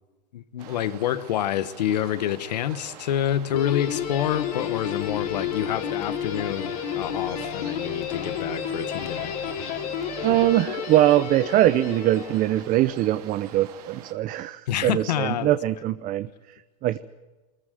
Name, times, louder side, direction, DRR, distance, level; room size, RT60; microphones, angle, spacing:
voice 1, 0.3-9.4 14.7-15.6, left 11 dB, 85° left, 1.2 m, -27 dB
sound 1, 0.6-14.1, right 10 dB, 70° right, 2.9 m, -45 dB
Guitar, 3.5-12.9, left 8 dB, 70° left, 3.7 m, -31 dB
sound 2, 3.9-10.6, left 2 dB, 15° left, 2.1 m, -45 dB
voice 2, 10.2-17.0, right 14 dB, 40° right, 0.8 m, -22 dB
23.5 x 14.5 x 9.2 m
supercardioid pair, 125°, 21 cm